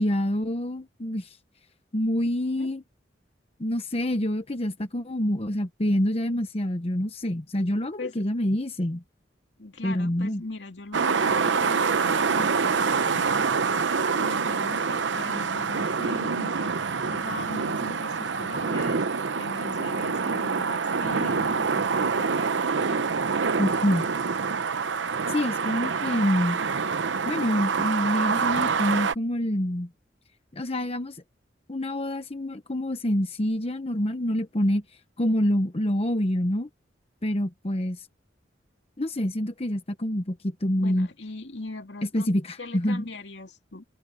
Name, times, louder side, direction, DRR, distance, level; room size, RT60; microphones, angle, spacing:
voice 1, 0.0-1.4 1.9-2.8 3.6-9.0 9.8-10.4 23.6-24.1 25.3-26.6 27.3-29.9 30.5-31.2 31.7-34.8 35.2-36.7 37.2-38.1 39.0-41.1 42.1-43.1, left 1 dB, 35° left, 1.0 m, -26 dB
voice 2, 9.6-13.5 14.1-22.4 22.9-23.1 40.8-42.3 42.6-43.9, left 2 dB, 75° left, 2.4 m, -40 dB
sound 1, 10.9-29.1, right 5 dB, 90° right, 0.8 m, -26 dB
head